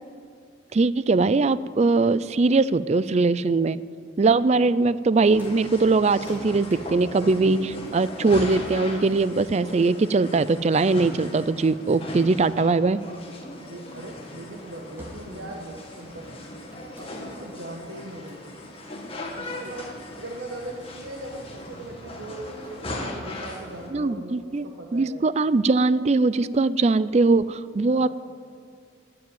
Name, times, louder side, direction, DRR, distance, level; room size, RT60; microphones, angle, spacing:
voice 1, 0.7-3.8 4.2-13.0 23.9-24.6 24.9-28.1, right 3 dB, 35° right, 16 dB, 0.4 m, -21 dB
sound 1, 5.1-9.8 10.5-11.8 13.6-13.9 14.4-14.6 15.0-15.5 15.8-17.4 17.9-18.5, equal, 10° right, 4.1 m, -51 dB
sound 2, 5.3-23.9, left 1 dB, 30° left, 2.1 m, -38 dB
voice 2, 13.6-16.4 16.9-18.6 19.3-19.9 20.2-25.3 27.8-28.1, right 1 dB, 85° right, 0 dB, 1.5 m, -40 dB
19.5 x 7.7 x 9.0 m, 2.2 s
head